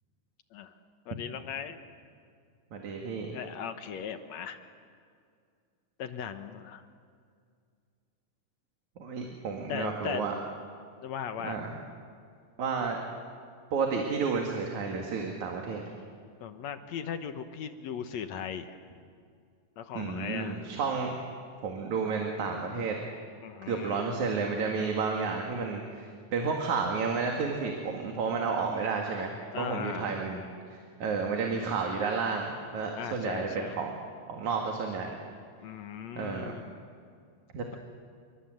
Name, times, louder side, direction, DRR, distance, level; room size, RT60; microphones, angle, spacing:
voice 1, 1.1-1.8 3.3-4.6 6.0-6.8 9.7-10.2 11.0-11.6 16.4-18.8 19.8-20.6 23.4-24.1 29.5-30.2 33.0-33.8 35.6-36.7, left 8 dB, 65° left, 9 dB, 2.2 m, -38 dB
voice 2, 2.7-3.3 9.0-10.3 11.4-11.7 12.6-13.0 13.7-15.8 19.9-21.1 21.6-23.0 23.6-30.4 31.0-33.9 34.3-35.1 36.2-36.6 37.5-37.8, right 5 dB, 70° right, 1 dB, 3.4 m, -31 dB
29.5 x 24.5 x 7.9 m, 2.2 s
omnidirectional pair, 3.6 m